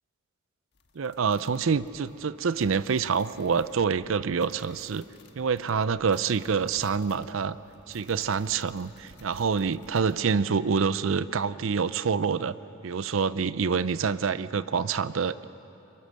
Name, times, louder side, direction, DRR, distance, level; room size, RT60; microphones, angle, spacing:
sound 1, 0.7-10.3, left 3 dB, 55° left, 1.5 m, -56 dB
voice 1, 1.0-5.1 5.3-7.6 7.9-12.5 12.8-15.4, right 5 dB, 70° right, 15 dB, 0.5 m, -26 dB
24.5 x 22.5 x 6.6 m, 2.9 s
head